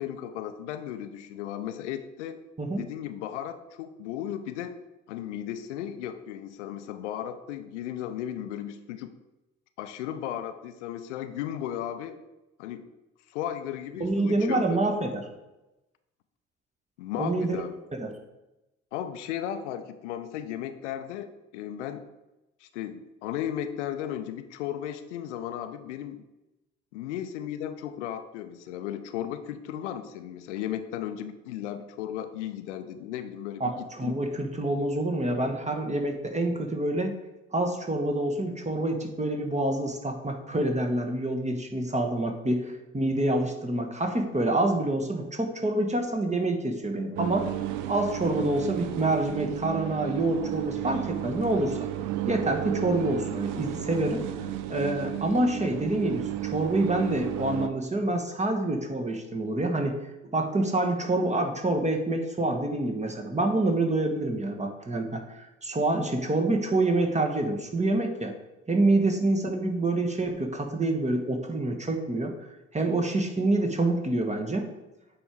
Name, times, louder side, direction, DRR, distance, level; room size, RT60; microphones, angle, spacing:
voice 1, 0.0-2.4 2.8-4.8 5.1-9.1 9.8-12.2 12.6-12.9 13.3-14.8 17.0-17.8 18.9-22.0 22.6-26.2 26.9-34.2 69.0-69.1, left 10 dB, 75° left, 10 dB, 0.6 m, -35 dB
voice 2, 14.0-15.3 17.2-17.6 18.0-18.1 33.6-37.1 37.5-47.5 47.9-51.8 52.3-54.2 54.7-60.0 60.3-68.3 68.7-72.3 72.7-74.7, right 2 dB, 20° right, 4 dB, 1.3 m, -27 dB
sound 1, 47.2-57.7, right 12 dB, 60° right, 0.6 m, -33 dB
8.5 x 3.5 x 4.5 m, 0.98 s
figure-of-eight pair, 45°, 35 cm